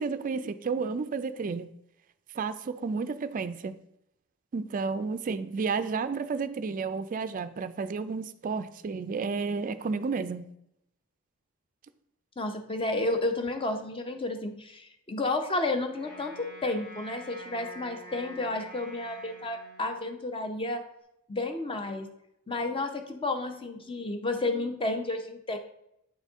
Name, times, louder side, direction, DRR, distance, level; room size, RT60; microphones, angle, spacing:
voice 1, 0.0-1.7 2.3-3.8 4.5-10.5, right 4 dB, 40° right, 12 dB, 0.3 m, -31 dB
voice 2, 12.4-20.8 21.3-22.1 22.5-25.6, left 2 dB, 25° left, 6 dB, 0.7 m, -31 dB
Wind instrument woodwind instrument, 15.9-20.3, left 1 dB, 80° left, 1.9 m, -47 dB
8.6 x 4.2 x 3.5 m, 0.80 s
head